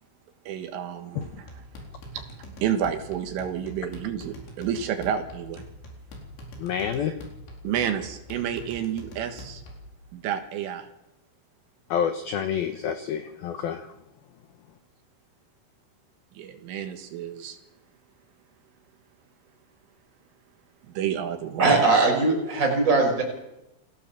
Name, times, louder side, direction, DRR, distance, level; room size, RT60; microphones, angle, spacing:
voice 1, 0.5-1.6 2.1-2.3 2.6-5.6 6.9-7.2 7.6-9.6 10.1-10.9 16.4-17.6 20.9-21.8, right 9 dB, 75° right, 6 dB, 4.0 m, -30 dB
sound 1, 1.2-9.9, equal, 60° left, 6.2 m, -44 dB
voice 2, 6.6-7.1 11.9-13.9, left 8 dB, 80° left, 8 dB, 2.1 m, -28 dB
voice 3, 21.6-23.2, right 3 dB, 15° right, 0 dB, 5.3 m, -20 dB
29.0 x 18.0 x 7.3 m, 0.93 s
omnidirectional pair, 5.9 m